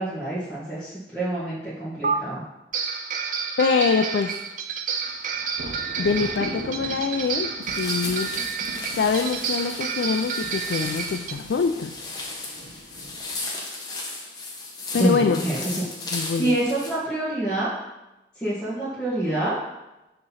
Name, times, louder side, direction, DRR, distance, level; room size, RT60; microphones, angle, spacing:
voice 1, 0.0-2.4 14.9-15.9 16.4-17.7 18.4-19.5, right 1 dB, 5° left, -12 dB, 1.5 m, -27 dB
sound 1, 2.0-2.2 2.7-11.3, right 6 dB, 45° right, 0.4 m, -30 dB
voice 2, 3.6-4.4 6.0-8.3 9.0-11.9 14.9-15.4 16.1-16.6, left 5 dB, 85° left, 6 dB, 0.4 m, -24 dB
sound 2, 5.0-13.5, right 1 dB, 70° right, 0.9 m, -41 dB
sound 3, 7.6-16.9, left 2 dB, 25° left, 0.9 m, -35 dB
6.2 x 3.0 x 5.6 m, 0.97 s
head